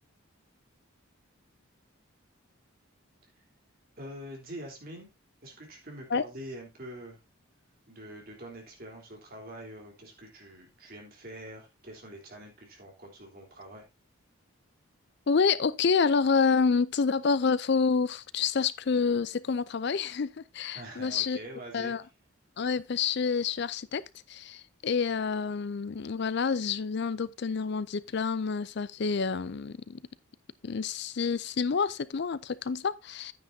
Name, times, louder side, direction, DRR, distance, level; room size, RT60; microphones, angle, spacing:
voice 1, 4.0-5.1 5.4-7.2 7.9-13.8 20.7-21.9, right 1 dB, 45° right, 3.5 m, -45 dB
voice 2, 15.3-21.4 21.7-22.0 22.6-30.0 30.6-33.3, left 5 dB, 50° left, 0.4 m, -28 dB
10.0 x 9.3 x 2.7 m
head